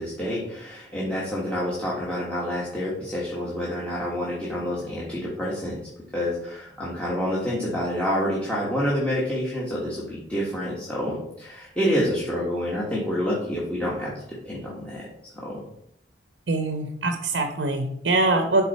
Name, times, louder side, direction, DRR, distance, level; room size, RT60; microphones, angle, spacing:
voice 1, 0.0-5.8 6.1-15.1 15.3-15.6, equal, 5° left, -7 dB, 1.6 m, -28 dB
voice 2, 16.5-18.7, right 2 dB, 85° right, 4 dB, 0.9 m, -23 dB
11.5 x 4.1 x 4.2 m, 0.76 s
head